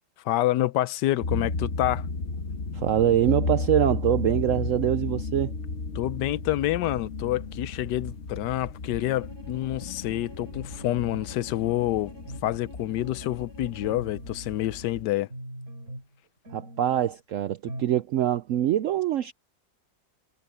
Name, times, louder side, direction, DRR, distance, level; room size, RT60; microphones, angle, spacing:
voice 1, 0.2-2.1 5.9-12.1 12.4-15.3, left 14 dB, 80° left, 1.2 m, -27 dB
sound 1, 1.2-15.0, left 3 dB, 45° left, 1.6 m, -34 dB
voice 2, 2.7-5.5 16.5-19.3, right 11 dB, 75° right, 0.7 m, -24 dB
Bowed string instrument, 9.0-14.1, equal, 15° left, 7.0 m, -49 dB
sound 2, 10.5-11.3 11.7-12.5 12.9-13.4 13.8-15.0 15.3-16.2 16.4-17.2 17.7-18.0 18.2-18.3, right 1 dB, 45° right, 7.2 m, -43 dB
omnidirectional pair, 1.8 m